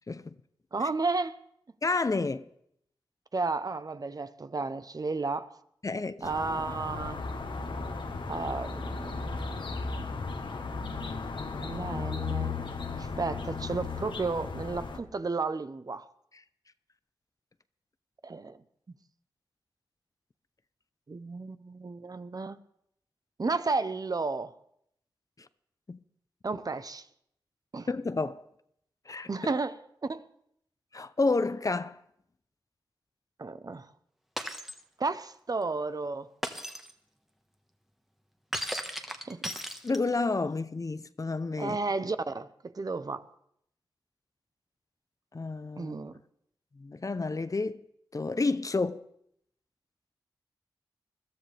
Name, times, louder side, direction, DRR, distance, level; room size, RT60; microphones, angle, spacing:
voice 1, 0.7-1.4 3.3-5.5 6.2-7.3 8.3-9.6 11.6-12.5 13.0-16.1 18.2-18.6 21.1-22.6 23.4-24.5 26.4-27.1 27.7-27.9 29.3-29.8 30.1-30.2 33.4-33.9 35.0-36.3 39.1-39.5 41.6-43.2 45.8-46.2, right 3 dB, 45° right, 0.8 m, -33 dB
voice 2, 1.8-2.5 5.8-6.3 25.9-26.0 27.9-28.4 29.1-29.3 30.9-32.0 39.8-41.8 45.3-45.9 46.8-47.8 48.1-49.0, left 3 dB, 40° left, 0.7 m, -30 dB
sound 1, 6.2-15.0, left 4 dB, 70° left, 1.4 m, -35 dB
Shatter, 34.4-34.8 36.4-36.9 38.5-40.2, equal, 5° right, 1.4 m, -36 dB
21.5 x 13.0 x 3.4 m
cardioid pair, 50°, 9 cm